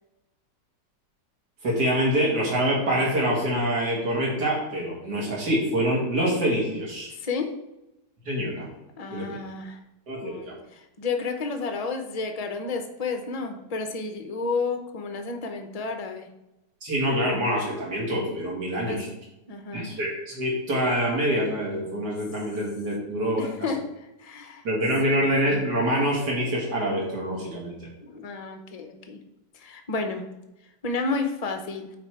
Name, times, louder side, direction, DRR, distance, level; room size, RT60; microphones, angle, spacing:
voice 1, 1.6-7.1 8.3-8.7 9.1-9.3 10.1-10.5 16.8-19.1 19.7-23.5 24.6-27.9, equal, 70° right, -4 dB, 2.4 m, -25 dB
voice 2, 7.2-7.5 9.0-9.8 10.2-16.3 18.9-19.0 19.5-19.9 23.4-24.6 25.1-25.3 28.0-29.2 29.5-30.3 30.8-31.9, left 4 dB, 45° left, 5 dB, 0.5 m, -31 dB
8.7 x 3.5 x 4.5 m, 0.95 s
omnidirectional pair, 1.8 m